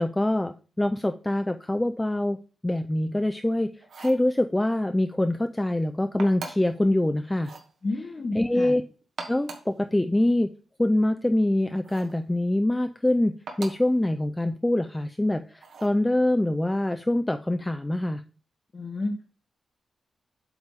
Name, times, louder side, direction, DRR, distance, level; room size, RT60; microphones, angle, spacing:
voice 1, 0.0-2.4 2.6-3.7 4.0-7.5 8.3-8.8 9.3-10.5 10.8-18.2, left 1 dB, 10° left, 7 dB, 0.4 m, -24 dB
sound 1, 3.8-4.3 6.2-6.8 7.4-7.7 9.0-9.8 11.8-12.2 13.5-13.9 15.6-16.0, right 4 dB, 75° right, 1.2 m, -41 dB
voice 2, 7.8-8.7 18.7-19.2, left 2 dB, 35° left, 1 dB, 0.9 m, -31 dB
8.0 x 3.4 x 5.2 m, 0.36 s
wide cardioid pair, 130°, 0 cm